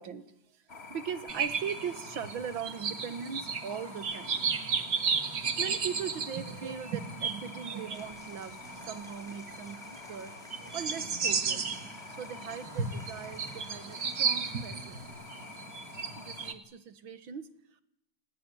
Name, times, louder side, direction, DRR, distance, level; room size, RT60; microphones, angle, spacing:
voice 1, 0.0-4.4 5.6-10.4 10.7-11.8 12.1-15.0 16.2-17.8, right 7 dB, 85° right, 14 dB, 2.3 m, -40 dB
sound 1, 0.7-16.5, left 3 dB, 30° left, 2.3 m, -47 dB
sound 2, 1.3-9.6 10.1-10.2 10.5-16.5, right 6 dB, 55° right, 2.3 m, -34 dB
Applause / Crowd, 7.9-15.1, equal, ahead, 5.6 m, -56 dB
28.5 x 19.5 x 9.3 m, 0.79 s
omnidirectional pair, 2.1 m